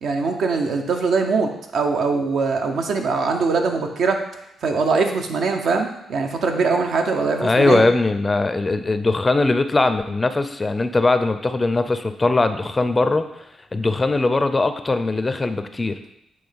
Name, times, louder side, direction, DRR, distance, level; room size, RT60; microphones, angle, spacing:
voice 1, 0.0-4.2 4.6-7.8, right 4 dB, 70° right, 3 dB, 0.9 m, -22 dB
voice 2, 7.4-13.3 13.7-16.0, left 3 dB, 25° left, 9 dB, 0.5 m, -20 dB
8.0 x 3.2 x 5.2 m, 0.80 s
cardioid pair, 95°, 0 cm